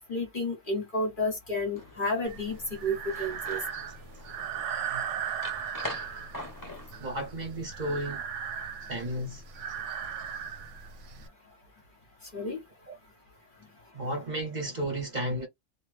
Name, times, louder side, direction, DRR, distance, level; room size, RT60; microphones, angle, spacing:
voice 1, 0.1-3.6 12.3-12.6, left 1 dB, 45° left, 1.1 m, -31 dB
sound 1, 1.8-7.0, left 1 dB, 15° left, 1.0 m, -44 dB
Breathing, 2.3-11.3, right 7 dB, 75° right, 0.9 m, -37 dB
voice 2, 7.0-8.2 8.9-9.4 12.9-13.0 13.9-15.5, right 1 dB, 35° right, 1.1 m, -33 dB
2.9 x 2.4 x 3.2 m
omnidirectional pair, 1.3 m